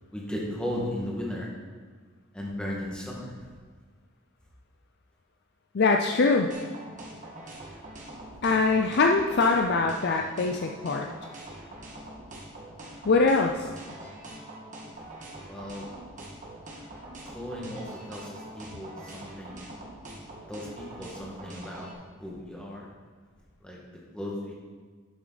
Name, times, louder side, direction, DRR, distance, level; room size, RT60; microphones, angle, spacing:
voice 1, 0.1-1.5 2.3-3.3 15.5-15.8 17.3-19.7 20.5-21.9 22.2-22.9 23.6-23.8 24.1-24.3, left 1 dB, 5° left, -4 dB, 1.7 m, -36 dB
voice 2, 5.7-6.5 8.4-11.1 13.1-13.7, left 3 dB, 50° left, 2 dB, 0.5 m, -23 dB
sound 1, 6.5-21.9, right 1 dB, 35° right, 1.7 m, -43 dB
11.5 x 6.7 x 4.0 m, 1.5 s
head